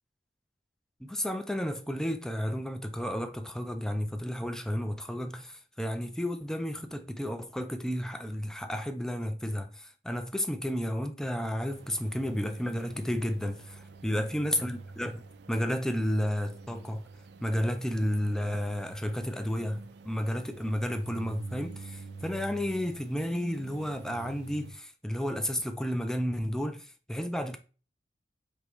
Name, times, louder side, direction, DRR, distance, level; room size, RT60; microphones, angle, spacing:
voice 1, 1.0-17.1 17.4-27.6, equal, 5° left, 0.3 m, -32 dB
sound 1, 11.7-24.7, right 3 dB, 70° right, 0.4 m, -46 dB
4.8 x 3.0 x 3.0 m
head